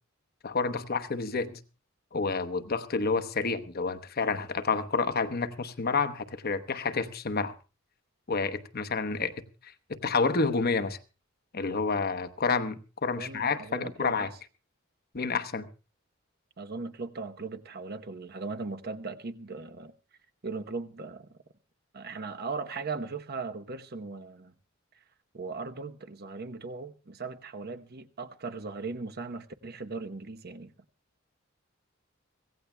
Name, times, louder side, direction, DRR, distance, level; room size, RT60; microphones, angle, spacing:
voice 1, 0.4-1.6 2.1-7.5 8.3-9.3 9.6-11.0 11.5-14.3 15.1-15.7, left 4 dB, 50° left, 0.9 m, -29 dB
voice 2, 13.1-14.3 16.6-19.9 20.4-21.4 21.9-24.5 25.3-30.7, right 4 dB, 50° right, 0.9 m, -38 dB
24.5 x 16.5 x 2.2 m
head